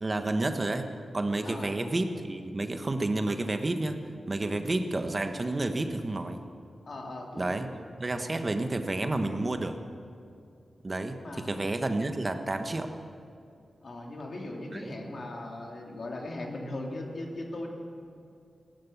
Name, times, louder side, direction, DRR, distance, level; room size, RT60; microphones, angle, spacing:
voice 1, 0.0-4.0 4.3-6.4 7.4-7.7 8.0-9.8 10.8-12.9 14.7-14.9, right 2 dB, 40° right, 7 dB, 1.3 m, -30 dB
voice 2, 4.5-4.8 6.9-7.7 11.1-11.6 13.8-17.7, left 2 dB, 65° left, 0 dB, 2.7 m, -39 dB
15.5 x 12.5 x 7.3 m, 2.5 s
cardioid pair, 40°, 0 cm